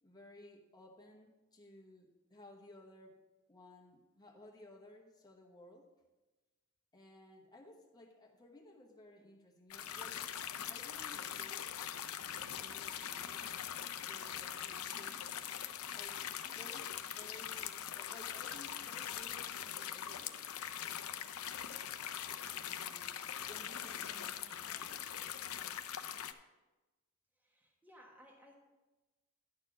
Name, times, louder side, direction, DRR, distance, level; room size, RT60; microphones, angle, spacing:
voice 1, 0.0-3.2 3.5-5.9 6.9-10.2 10.7-11.7 12.3-13.6 13.9-16.2 16.5-20.5 22.6-25.0, left 1 dB, 20° left, 0 dB, 1.1 m, -57 dB
sound 1, 9.7-26.3, left 9 dB, 75° left, 0.6 m, -42 dB
voice 2, 16.4-16.7 24.1-24.7 27.4-28.5, equal, 10° right, -2 dB, 1.3 m, -61 dB
11.5 x 4.4 x 7.2 m, 1.1 s
head